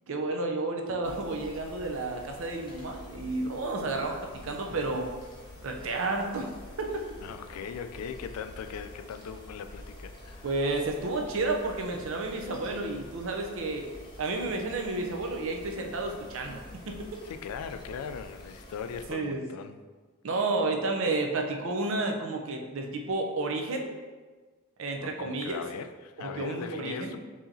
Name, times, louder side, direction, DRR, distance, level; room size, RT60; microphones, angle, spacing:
voice 1, 0.1-5.1 5.6-6.5 6.8-6.9 10.4-13.9 14.2-16.6 16.9-17.2 19.1-19.4 20.2-23.9 24.8-25.6 26.2-27.1, right 2 dB, 60° right, 2 dB, 0.5 m, -31 dB
sound 1, 1.0-19.1, left 1 dB, 20° left, 0.7 m, -48 dB
voice 2, 7.2-10.7 17.2-19.8 25.0-27.2, left 6 dB, 85° left, 13 dB, 0.3 m, -39 dB
4.8 x 2.8 x 2.7 m, 1.4 s
head